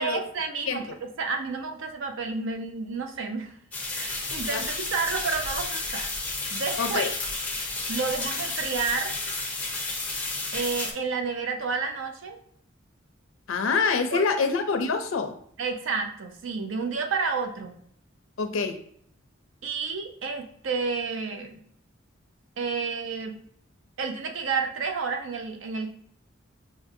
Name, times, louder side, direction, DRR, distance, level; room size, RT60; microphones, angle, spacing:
voice 1, 0.0-3.5 3.9-6.1 6.5-7.0 7.9-9.2 10.5-12.4 14.1-14.2 15.6-17.8 19.6-21.6 22.6-23.4 24.0-25.9, right 4 dB, 75° right, 5 dB, 0.5 m, -30 dB
sound 1, 3.7-10.9, left 3 dB, 5° left, 0.5 m, -32 dB
voice 2, 6.8-7.1 13.5-15.3 18.4-18.8, left 4 dB, 80° left, 6 dB, 0.5 m, -26 dB
5.1 x 2.6 x 2.5 m, 0.65 s
head